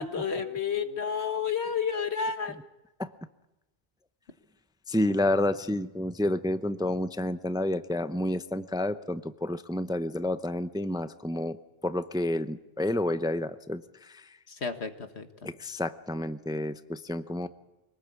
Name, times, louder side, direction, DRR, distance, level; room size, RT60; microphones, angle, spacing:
voice 1, 0.0-2.6 14.5-15.3, left 6 dB, 90° left, 7 dB, 1.9 m, -31 dB
voice 2, 4.9-11.6 11.8-14.2 15.4-17.5, left 1 dB, 5° right, 11 dB, 0.5 m, -30 dB
25.0 x 19.5 x 8.3 m, 1.0 s
omnidirectional pair, 1.1 m